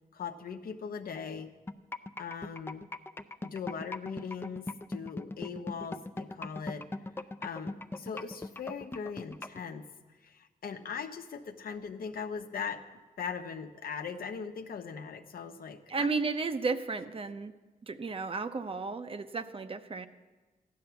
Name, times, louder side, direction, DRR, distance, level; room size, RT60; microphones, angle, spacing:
voice 1, 0.1-1.5 2.2-2.9 3.4-6.9 7.4-9.9 10.2-12.8 13.2-16.2, left 6 dB, 75° left, 7 dB, 1.0 m, -40 dB
sound 1, 1.7-9.6, left 2 dB, 15° left, 0.5 m, -38 dB
voice 2, 15.9-17.6 17.8-20.1, right 4 dB, 40° right, 9 dB, 0.7 m, -33 dB
15.0 x 10.5 x 7.0 m, 1.3 s
wide cardioid pair, 125°, 15 cm